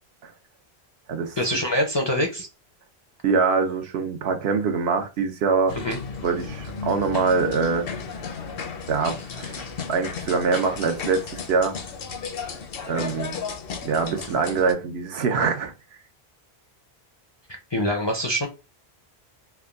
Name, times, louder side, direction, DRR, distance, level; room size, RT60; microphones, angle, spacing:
voice 1, 1.4-2.5 5.7-6.0 17.7-18.5, equal, 40° left, 0.4 m, -24 dB
voice 2, 3.2-5.8 6.2-7.9 8.9-11.8 12.8-13.3 13.8-15.7, right 5 dB, 80° right, 0.9 m, -24 dB
sound 1, 5.7-14.7, left 5 dB, 65° left, 0.8 m, -34 dB
3.4 x 2.2 x 2.3 m
omnidirectional pair, 1.1 m